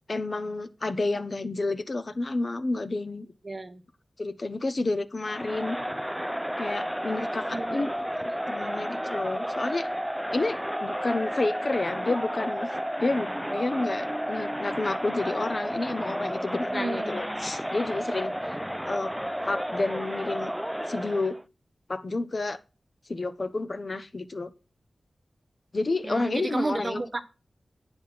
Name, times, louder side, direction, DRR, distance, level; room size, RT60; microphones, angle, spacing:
voice 1, 0.1-3.3 4.2-5.8 6.6-9.9 10.3-18.3 18.8-19.1 19.5-20.5 20.9-21.4 21.9-22.6 23.1-24.5 25.7-27.0, left 2 dB, 55° left, 1.0 m, -30 dB
voice 2, 3.4-3.8 7.5-7.9 16.7-17.2 26.0-27.2, right 2 dB, 45° right, 1.1 m, -32 dB
Crowd, 5.3-21.4, equal, 5° right, 0.4 m, -32 dB
8.6 x 7.1 x 5.8 m
cardioid pair, 40°, 0 cm